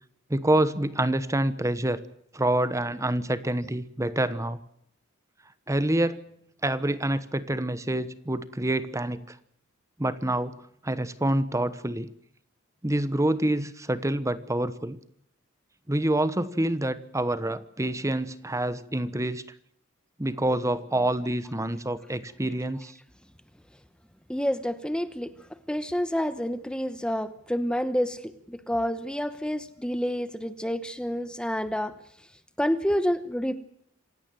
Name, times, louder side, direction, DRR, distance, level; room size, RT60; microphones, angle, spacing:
voice 1, 0.3-2.0 2.3-4.6 5.7-6.2 6.6-9.4 10.0-10.5 10.8-12.1 12.8-15.0 15.9-19.4 20.2-23.0, right 1 dB, 15° right, 14 dB, 1.0 m, -27 dB
voice 2, 24.3-25.3 25.7-32.0 32.6-33.7, equal, 5° left, 12 dB, 0.9 m, -28 dB
26.5 x 17.0 x 7.6 m, 0.72 s
head